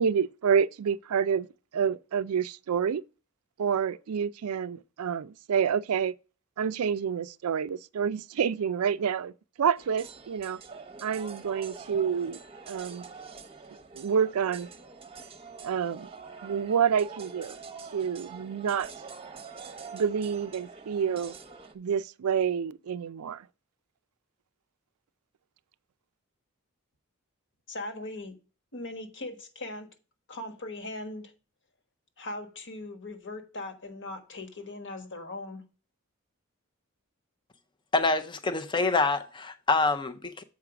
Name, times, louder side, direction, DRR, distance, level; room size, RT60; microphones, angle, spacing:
voice 1, 0.0-1.5 1.7-3.0 3.6-6.1 6.6-9.3 9.6-10.6 11.0-12.4 12.7-13.1 13.9-14.7 15.6-16.1 16.4-17.6 17.9-18.9 19.9-21.3 21.7-23.5, right 7 dB, 90° right, 0.4 m, -28 dB
sound 1, 9.8-21.7, right 5 dB, 25° right, 0.8 m, -45 dB
voice 2, 27.7-28.4 28.7-29.9 30.3-31.3 32.2-35.6, left 2 dB, 60° left, 1.4 m, -39 dB
voice 3, 37.9-40.4, left 3 dB, 20° left, 0.5 m, -26 dB
7.4 x 4.7 x 4.9 m
head